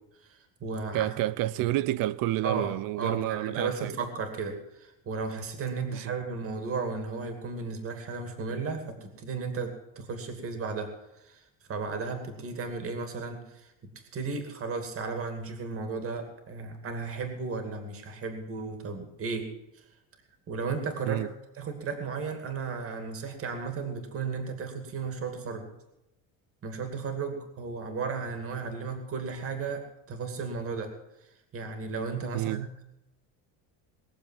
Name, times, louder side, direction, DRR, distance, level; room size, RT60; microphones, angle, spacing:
voice 1, 0.2-1.1 2.4-2.7 3.0-19.5 19.7-19.8 20.5-21.2 21.5-25.7 26.6-29.8 30.1-30.9 31.5-32.8, right 4 dB, 35° right, 2.5 m, -34 dB
voice 2, 0.9-3.9 5.9-6.1 21.0-21.3 32.3-32.7, right 15 dB, 60° right, 0.6 m, -29 dB
20.5 x 7.3 x 7.5 m
cardioid pair, 150°, 37 cm